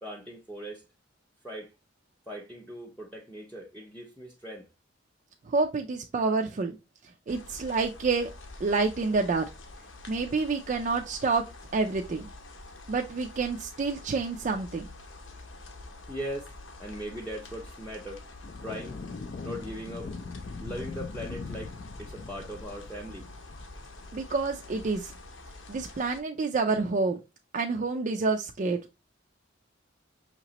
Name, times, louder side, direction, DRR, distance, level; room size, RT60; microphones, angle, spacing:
voice 1, 0.0-0.8 1.4-1.7 2.3-4.7 16.1-16.5 16.8-18.2 18.6-19.0 19.4-20.1 20.6-23.3, equal, 5° left, 0.6 m, -39 dB
voice 2, 5.5-6.8 7.3-8.3 8.6-9.4 10.1-11.4 11.7-12.3 12.9-14.9 24.1-25.1 25.7-27.2 27.5-28.8, right 4 dB, 40° right, 0.4 m, -28 dB
sound 1, 7.3-26.2, left 2 dB, 80° left, 0.8 m, -47 dB
sound 2, 18.4-24.0, left 4 dB, 45° left, 0.3 m, -41 dB
5.7 x 2.9 x 2.8 m
head